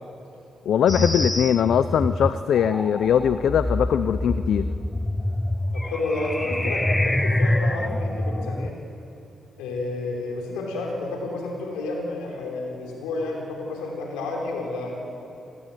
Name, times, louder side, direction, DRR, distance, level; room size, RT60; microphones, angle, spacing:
voice 1, 0.7-4.7, left 8 dB, 75° left, 12 dB, 0.7 m, -21 dB
sound 1, 0.9-8.7, left 1 dB, 15° left, 1.0 m, -26 dB
voice 2, 5.7-8.7 9.6-15.0, left 2 dB, 90° left, -1 dB, 5.3 m, -30 dB
28.5 x 18.5 x 9.4 m, 2.9 s
supercardioid pair, 50°, 0 cm